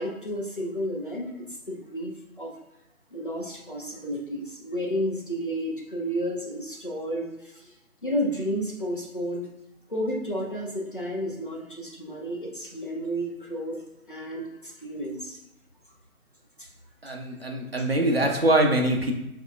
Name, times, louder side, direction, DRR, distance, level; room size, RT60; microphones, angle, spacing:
voice 1, 0.0-1.3 1.7-2.5 3.1-7.7 8.0-9.5 9.9-13.8 14.1-15.4 16.6-16.7, equal, 40° left, -2 dB, 0.5 m, -31 dB
voice 2, 17.0-19.1, right 1 dB, 45° right, 2 dB, 0.5 m, -23 dB
6.0 x 3.0 x 2.3 m, 0.90 s
figure-of-eight pair, 160°, 43 cm